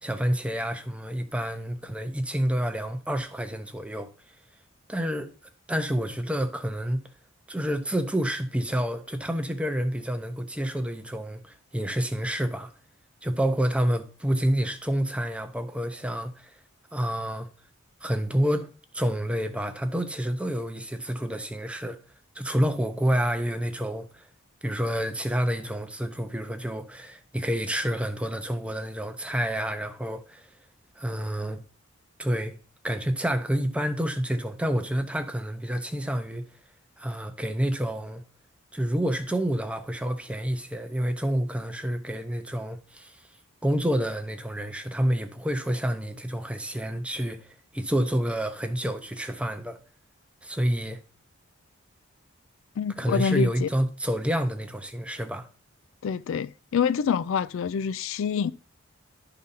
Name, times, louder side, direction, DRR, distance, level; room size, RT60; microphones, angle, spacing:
voice 1, 0.0-4.1 4.9-5.3 5.7-7.0 7.5-12.7 13.2-16.6 16.9-17.5 18.0-18.7 18.9-22.0 22.3-24.3 24.6-30.5 31.0-31.6 32.2-32.6 32.8-36.4 37.0-38.2 38.7-43.3 43.6-49.8 50.4-51.0 53.0-55.5, equal, 5° right, 0.6 m, -28 dB
voice 2, 52.8-53.7 56.0-58.5, left 6 dB, 65° left, 0.3 m, -26 dB
11.5 x 3.9 x 5.5 m
head